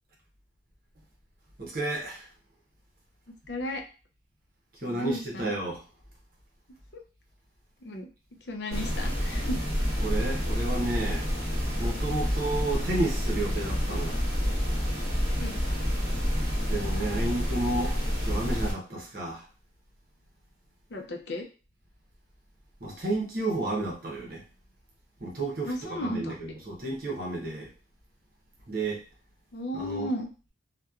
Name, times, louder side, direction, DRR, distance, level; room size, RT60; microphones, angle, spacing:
voice 1, 1.6-2.3 4.8-5.8 10.0-11.3 11.8-14.2 16.7-19.5 22.8-24.4 25.2-27.7 28.7-29.0 29.7-30.1, right 2 dB, 50° right, -2 dB, 0.8 m, -32 dB
voice 2, 3.5-3.8 4.8-5.5 6.9-7.0 7.8-8.1 8.4-9.6 15.4-15.6 20.9-21.5 25.6-26.4 29.5-30.3, left 1 dB, 60° left, 3 dB, 0.5 m, -34 dB
sound 1, 8.7-18.7, equal, 15° right, 1.0 m, -28 dB
2.8 x 2.1 x 2.3 m, 0.34 s
head